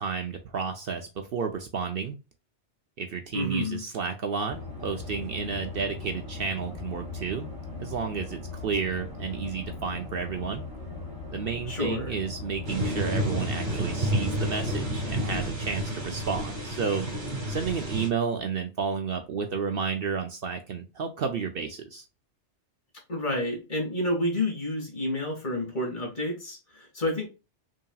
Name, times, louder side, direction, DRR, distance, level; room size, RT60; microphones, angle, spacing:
voice 1, 0.0-2.2 3.0-7.5 7.8-10.6 11.3-17.1 17.5-22.0, right 6 dB, 60° right, 5 dB, 0.7 m, -31 dB
voice 2, 3.3-3.8 11.7-12.1 23.1-27.3, left 1 dB, 40° left, 0 dB, 1.9 m, -29 dB
sound 1, 4.5-15.4, left 3 dB, 5° right, 2.2 m, -39 dB
sound 2, 12.7-18.1, right 1 dB, 40° right, 1.4 m, -30 dB
5.5 x 2.8 x 2.3 m, 0.28 s
omnidirectional pair, 1.2 m